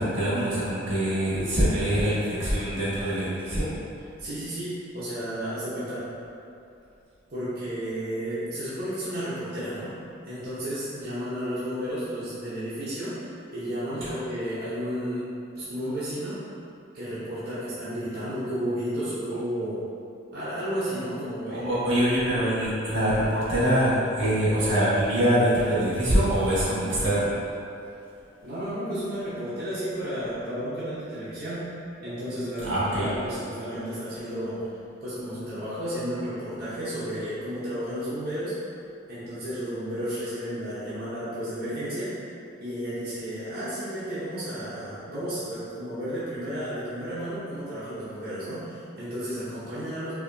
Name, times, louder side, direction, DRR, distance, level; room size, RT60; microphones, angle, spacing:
voice 1, 0.0-3.7 14.0-14.1 21.6-27.4 32.6-33.1, equal, 75° right, -9 dB, 1.4 m, -24 dB
voice 2, 4.2-6.0 7.3-9.9 10.2-13.2 13.5-15.3 15.6-16.4 16.9-19.8 20.3-22.0 28.4-31.6 32.0-34.6 35.0-38.5 39.1-42.1 42.6-50.1, equal, 50° right, -13 dB, 0.8 m, -32 dB
4.7 x 2.6 x 2.6 m, 2.6 s
head